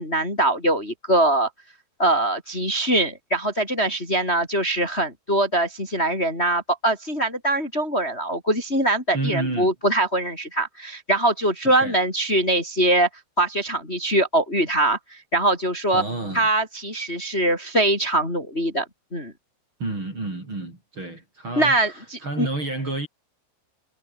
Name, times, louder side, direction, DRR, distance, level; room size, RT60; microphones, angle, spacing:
voice 1, 0.0-1.5 2.0-13.1 13.4-16.0 16.3-18.9 19.1-19.3 21.6-22.5, right 1 dB, 15° left, 5.3 m, -22 dB
voice 2, 9.1-9.7 11.6-12.0 15.9-16.5 19.8-23.1, right 2 dB, 25° right, 6.5 m, -30 dB
omnidirectional pair, 5.3 m